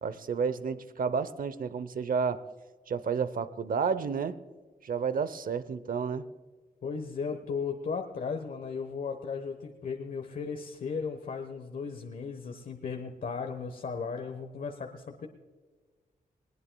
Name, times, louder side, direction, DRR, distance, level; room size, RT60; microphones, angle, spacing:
voice 1, 0.0-2.4 2.9-4.4 4.8-6.2, right 6 dB, 65° right, 14 dB, 0.8 m, -31 dB
voice 2, 6.8-15.3, left 5 dB, 65° left, 4 dB, 1.2 m, -36 dB
20.5 x 19.0 x 2.3 m, 1.4 s
cardioid pair, 85°, 16 cm